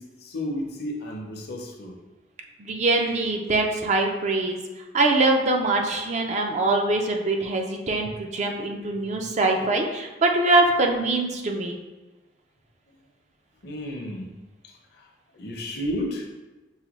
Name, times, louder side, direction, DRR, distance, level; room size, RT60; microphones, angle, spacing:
voice 1, 0.0-2.0 8.0-8.1 9.2-9.3 13.6-14.3 14.6-15.1 15.3-16.3, left 1 dB, 60° left, 1 dB, 0.7 m, -33 dB
voice 2, 2.6-4.6 4.9-11.8, right 2 dB, 40° right, 2 dB, 0.4 m, -23 dB
5.5 x 2.2 x 3.0 m, 1.2 s
head